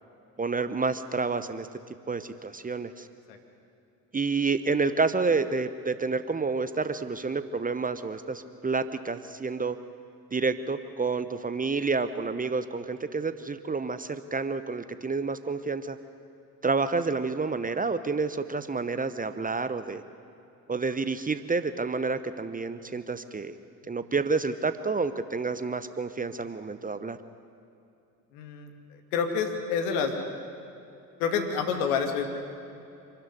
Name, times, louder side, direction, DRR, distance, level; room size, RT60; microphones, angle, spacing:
voice 1, 0.4-1.7 2.1-3.1 4.1-9.8 10.3-16.0 16.6-20.0 20.7-23.5 23.9-27.2, right 4 dB, 20° right, 12 dB, 1.0 m, -29 dB
voice 2, 28.3-30.1 31.2-32.2, left 6 dB, 65° left, 5 dB, 2.6 m, -28 dB
26.5 x 13.0 x 9.9 m, 2.8 s
figure-of-eight pair, 55°, 47 cm